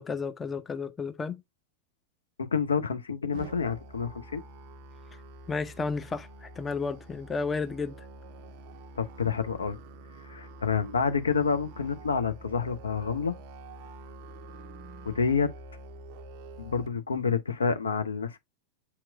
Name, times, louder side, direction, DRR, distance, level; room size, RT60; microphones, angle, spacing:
voice 1, 0.0-1.4 5.5-7.9, left 4 dB, 15° left, 0.4 m, -32 dB
voice 2, 2.4-4.4 9.0-9.8 10.3-13.3 15.0-15.5 16.6-18.4, left 5 dB, 70° left, 0.5 m, -28 dB
Musical instrument, 3.3-16.9, right 2 dB, 45° right, 0.4 m, -47 dB
8.2 x 2.9 x 2.2 m
figure-of-eight pair, 90°, 0 cm